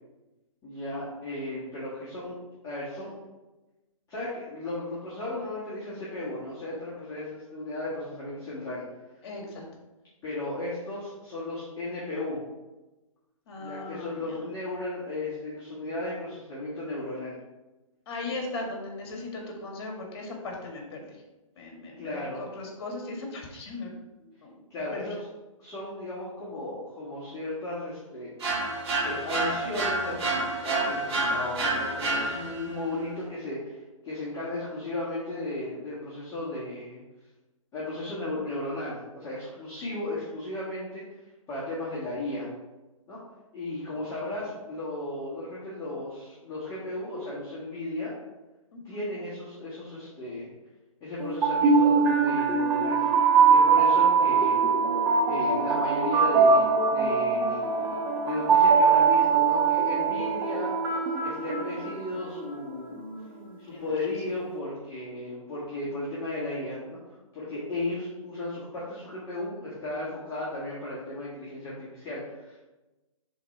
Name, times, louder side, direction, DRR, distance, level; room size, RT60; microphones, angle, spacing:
voice 1, 0.6-2.4 2.6-3.1 4.1-8.8 10.2-12.4 13.6-17.4 18.3-18.4 22.0-22.4 24.7-25.2 25.6-28.7 29.0-33.8 34.0-37.0 37.7-41.0 41.5-42.5 43.1-43.2 43.5-48.1 48.8-50.5 51.0-53.1 53.5-54.7 55.3-60.7 61.2-63.0 63.6-72.5, left 2 dB, 20° left, -12 dB, 1.7 m, -35 dB
voice 2, 9.2-9.6 13.5-14.5 18.1-21.2 21.6-24.6 24.9-25.1 48.7-49.0 62.9-63.9, left 2 dB, 50° left, 1 dB, 1.6 m, -38 dB
sound 1, 28.4-32.7, right 2 dB, 50° right, 1.7 m, -29 dB
sound 2, 51.2-62.3, right 5 dB, 10° right, 0.4 m, -22 dB
5.8 x 3.8 x 4.3 m, 1.1 s
hypercardioid pair, 145°, 18 cm